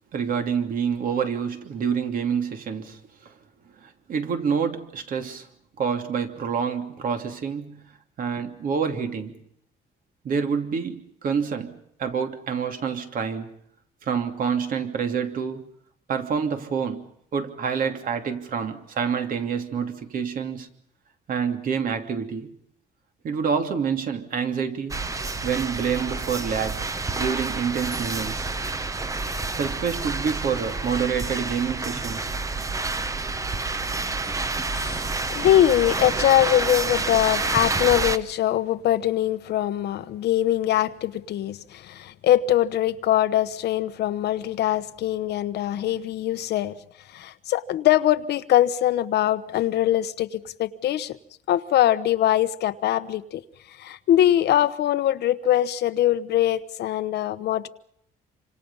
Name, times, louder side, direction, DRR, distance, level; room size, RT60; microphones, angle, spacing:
voice 1, 0.1-3.3 3.8-5.5 5.8-7.9 8.2-9.4 10.2-13.6 14.0-15.6 16.1-20.7 21.3-22.5 23.2-25.0 25.4-26.9 27.2-28.5 29.5-32.3, right 6 dB, 55° right, 3.0 m, -27 dB
sound 1, 24.9-38.2, right 3 dB, 20° right, 1.1 m, -28 dB
voice 2, 34.7-46.7 47.1-51.2 51.5-53.4 53.7-57.7, left 12 dB, 80° left, 1.2 m, -22 dB
27.5 x 25.5 x 5.6 m
cardioid pair, 145°, 17 cm